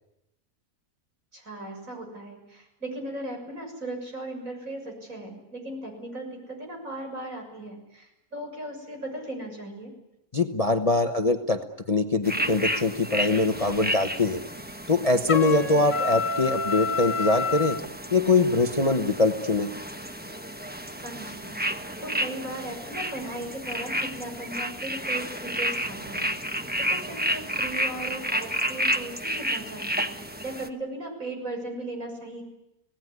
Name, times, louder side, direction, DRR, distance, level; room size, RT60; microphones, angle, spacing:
voice 1, 1.3-9.9 21.0-26.3 26.9-30.1 30.4-32.4, right 1 dB, 60° right, 2 dB, 7.2 m, -37 dB
voice 2, 10.3-11.6 11.9-14.4 14.9-17.8 18.1-19.7, left 3 dB, 25° left, 6 dB, 1.1 m, -23 dB
sound 1, 12.2-30.7, equal, 5° right, 1.0 m, -31 dB
Trumpet, 15.3-17.8, left 4 dB, 55° left, 1.7 m, -28 dB
26.5 x 18.0 x 9.7 m, 0.88 s
omnidirectional pair, 1.6 m